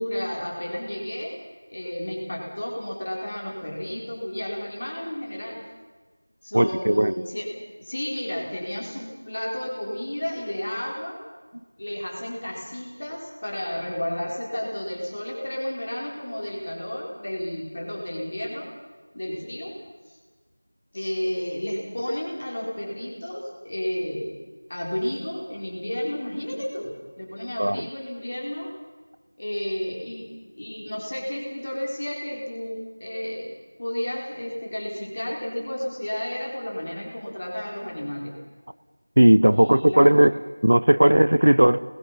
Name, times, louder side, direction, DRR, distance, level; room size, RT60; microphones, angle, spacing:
voice 1, 0.0-1.4 1.7-5.7 6.4-11.2 11.8-18.7 19.1-19.8 20.1-20.2 20.9-24.4 24.7-28.7 29.4-38.4 39.5-40.2, left 1 dB, 30° left, 4.4 m, -32 dB
voice 2, 6.5-7.1 27.6-27.8 39.2-40.3 40.6-41.8, right 1 dB, 55° right, 0.8 m, -17 dB
29.0 x 21.0 x 5.9 m
figure-of-eight pair, 180°, 0 cm